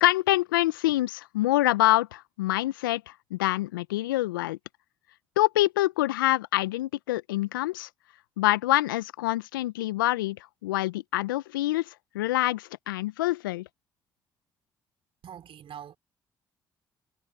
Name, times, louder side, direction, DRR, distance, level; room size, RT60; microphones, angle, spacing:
voice 1, 0.0-4.6 5.4-7.9 8.4-10.4 10.6-13.6, left 17 dB, 80° left, 1.0 m, -26 dB
voice 2, 15.2-16.0, right 9 dB, 55° right, 4.0 m, -43 dB
figure-of-eight pair, 45°, 11 cm